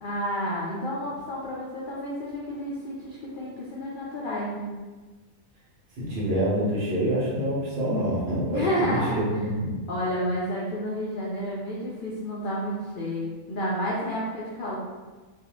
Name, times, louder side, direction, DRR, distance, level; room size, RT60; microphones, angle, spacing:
voice 1, 0.0-4.7 8.5-9.2 9.9-14.8, equal, 80° left, -5 dB, 0.4 m, -30 dB
voice 2, 6.0-9.8, right 1 dB, 55° right, -6 dB, 0.9 m, -26 dB
2.5 x 2.3 x 2.9 m, 1.3 s
omnidirectional pair, 1.4 m